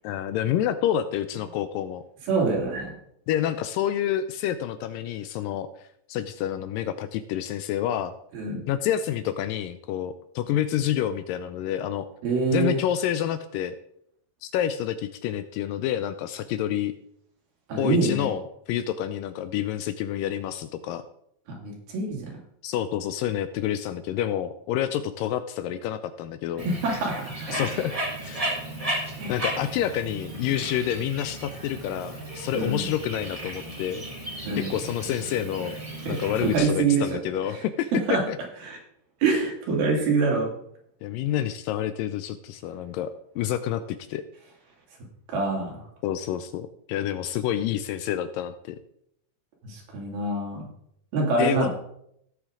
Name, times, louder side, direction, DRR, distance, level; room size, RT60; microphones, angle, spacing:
voice 1, 0.0-2.0 3.3-5.7 6.1-8.1 8.7-12.1 12.5-13.8 14.4-16.9 17.8-21.0 22.6-26.7 27.5-28.4 29.3-34.1 34.6-35.8 36.1-38.4 41.0-44.2 46.0-48.8 51.4-51.7, left 10 dB, 80° left, 12 dB, 2.1 m, -28 dB
voice 2, 2.3-2.9 8.3-8.6 12.2-12.8 17.7-18.3 21.6-22.3 26.7-27.1 27.4-27.9 29.2-29.4 32.5-32.9 34.5-34.7 36.1-37.0 38.1-38.2 38.6-38.8 39.2-40.5 45.3-45.7 49.6-50.6 51.1-51.7, right 4 dB, 80° right, -1 dB, 4.4 m, -25 dB
Bird, 26.6-36.6, right 1 dB, 55° right, 0.4 m, -35 dB
16.5 x 6.4 x 3.7 m, 0.74 s
omnidirectional pair, 4.2 m